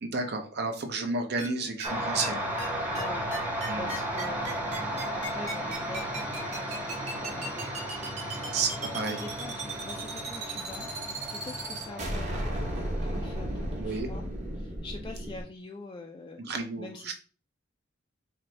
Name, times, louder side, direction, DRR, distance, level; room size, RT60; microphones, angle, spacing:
voice 1, 0.0-2.4 3.7-3.9 8.5-9.2 13.8-14.1 16.4-17.1, right 3 dB, 55° right, 5 dB, 0.6 m, -31 dB
sound 1, 1.4-1.5 1.8-1.9 2.2-2.3 2.6-2.7 2.9-3.0 3.3-15.4, right 1 dB, 35° right, 1.0 m, -35 dB
sound 2, 1.8-13.9, right 1 dB, 5° right, 0.7 m, -35 dB
voice 2, 2.9-3.2 3.7-7.8 8.9-10.9 11.3-14.3 14.5-16.4 16.8-17.1, left 2 dB, 25° left, 1 dB, 0.3 m, -44 dB
4.0 x 2.6 x 3.2 m, 0.39 s
head